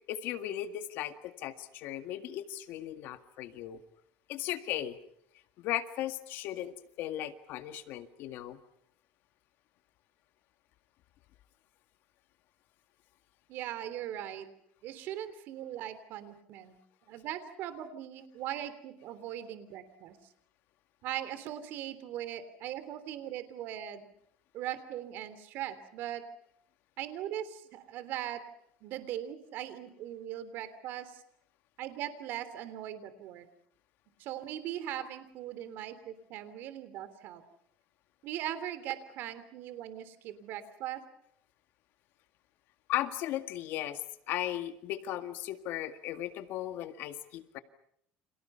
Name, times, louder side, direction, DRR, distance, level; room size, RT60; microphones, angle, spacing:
voice 1, 0.1-3.8 4.3-5.0 5.6-8.6 42.9-44.0 44.3-47.6, left 12 dB, 60° left, 9 dB, 1.9 m, -36 dB
voice 2, 13.5-14.5 14.8-16.7 17.1-20.2 21.0-24.1 24.5-26.2 27.0-28.4 28.8-31.2 31.8-33.5 34.2-37.4 38.2-41.0, right 11 dB, 60° right, 12 dB, 3.3 m, -40 dB
30.0 x 27.5 x 5.7 m, 0.71 s
cardioid pair, 135°, 4 cm